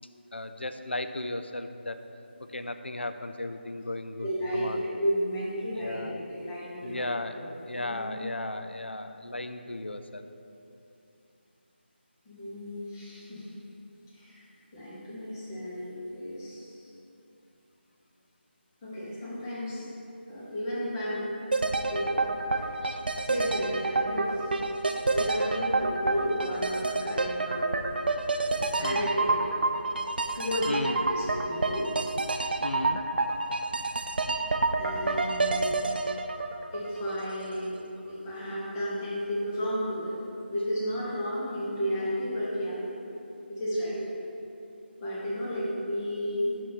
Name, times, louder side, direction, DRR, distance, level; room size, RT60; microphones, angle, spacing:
voice 1, 0.3-2.0 2.5-4.3 4.5-4.8 5.8-6.2 6.8-10.3 22.9-23.0 28.8-29.1 30.7-31.0 32.6-33.0, left 2 dB, 75° left, 8 dB, 0.4 m, -35 dB
voice 2, 4.2-7.5 7.7-8.4 12.2-13.5 14.1-14.5 14.7-16.9 18.8-19.8 20.3-21.3 21.9-22.7 23.1-24.6 25.1-28.0 28.8-29.4 30.3-31.9 34.8-35.9 36.7-37.7 38.1-40.2 40.5-42.8 43.5-44.0 45.0-46.6, equal, 15° left, -8 dB, 1.1 m, -33 dB
sound 1, 21.5-37.5 37.7-37.8, right 3 dB, 55° right, 0.4 m, -28 dB
5.3 x 5.3 x 4.2 m, 2.8 s
figure-of-eight pair, 155°, 6 cm